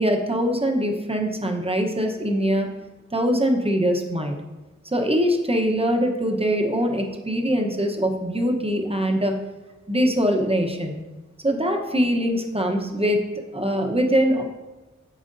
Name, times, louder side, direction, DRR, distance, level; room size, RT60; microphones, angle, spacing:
voice 1, 0.0-2.7 3.1-4.4 4.8-9.4 9.9-11.0 11.4-14.4, equal, 20° right, 2 dB, 1.0 m, -23 dB
9.0 x 7.1 x 2.7 m, 1.1 s
wide cardioid pair, 85°, 29 cm